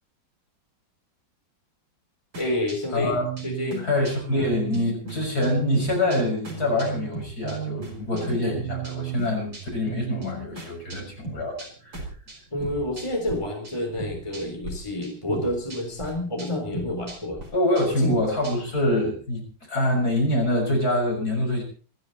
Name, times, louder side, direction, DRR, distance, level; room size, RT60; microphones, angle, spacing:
sound 1, 2.3-13.4 13.6-14.7 15.0-18.8, right 4 dB, 80° right, 5.6 m, -36 dB
voice 1, 2.4-3.2 3.4-3.8 4.3-4.5 12.5-17.4 18.0-18.2, left 1 dB, 15° left, 1 dB, 3.9 m, -29 dB
voice 2, 2.9-3.3 3.8-12.0 17.5-21.6, left 1 dB, 50° left, 1 dB, 6.7 m, -25 dB
26.5 x 10.5 x 4.1 m, 0.39 s
omnidirectional pair, 2.0 m